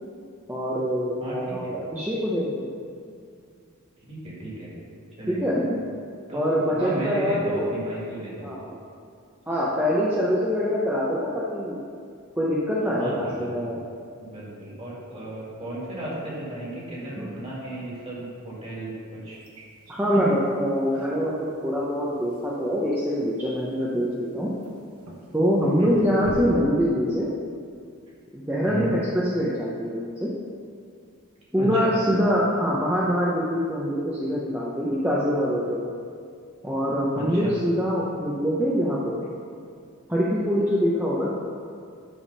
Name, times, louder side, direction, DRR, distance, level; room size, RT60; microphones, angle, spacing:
voice 1, 0.5-2.7 5.3-5.6 6.3-7.7 8.4-8.8 9.5-11.8 12.4-13.7 17.2-17.3 19.9-24.5 25.3-27.3 28.3-30.3 31.5-35.9 36.6-39.2 40.1-41.3, equal, 10° right, -7 dB, 0.6 m, -24 dB
voice 2, 1.2-1.7 4.1-4.7 5.2-5.4 6.3-8.5 13.0-13.7 14.2-19.4 25.8-26.0 28.7-28.9 31.6-31.9 37.1-37.5, right 1 dB, 25° right, -7 dB, 2.0 m, -35 dB
sound 1, 19.3-26.4, right 1 dB, 80° right, 1.0 m, -45 dB
9.9 x 3.5 x 5.5 m, 2.3 s
head